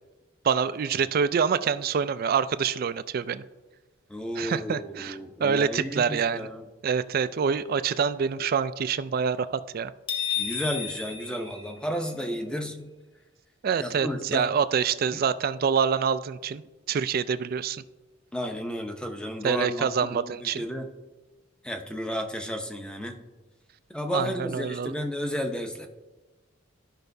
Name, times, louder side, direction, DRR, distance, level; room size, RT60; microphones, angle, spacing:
voice 1, 0.4-3.4 4.4-6.5 6.8-9.9 13.6-16.6 16.9-17.8 19.4-20.6 24.1-24.9, right 6 dB, 50° right, 14 dB, 0.3 m, -26 dB
voice 2, 4.1-6.6 10.4-12.9 13.8-14.5 15.1-15.2 18.3-20.9 21.6-23.2 23.9-25.9, equal, 5° left, 4 dB, 0.6 m, -32 dB
sound 1, 10.1-12.3, left 8 dB, 25° left, 1.0 m, -32 dB
13.0 x 5.5 x 2.6 m, 1.2 s
head